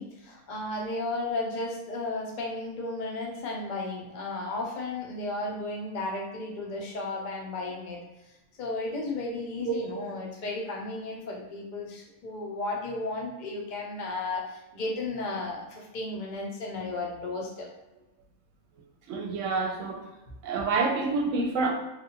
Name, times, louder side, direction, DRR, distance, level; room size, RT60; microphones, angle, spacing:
voice 1, 0.0-8.0 8.6-17.7, left 2 dB, 45° left, -1 dB, 0.6 m, -34 dB
voice 2, 19.1-20.0 20.4-21.7, right 4 dB, 65° right, 1 dB, 0.9 m, -27 dB
3.3 x 2.4 x 2.8 m, 1.0 s
omnidirectional pair, 1.5 m